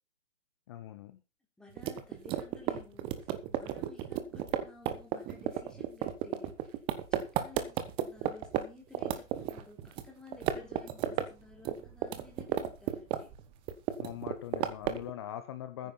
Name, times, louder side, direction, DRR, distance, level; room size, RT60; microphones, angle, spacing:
voice 1, 0.7-1.2 14.0-15.9, left 11 dB, 20° left, 11 dB, 0.8 m, -42 dB
voice 2, 1.6-6.8 7.1-13.3 15.8-15.9, left 3 dB, ahead, 0 dB, 3.8 m, -54 dB
sound 1, 1.8-8.6 8.9-10.1 10.3-11.3 11.5-13.4 13.7-15.1, right 12 dB, 15° right, 1.1 m, -32 dB
15.0 x 9.7 x 4.3 m, 0.31 s
figure-of-eight pair, 140°, 38 cm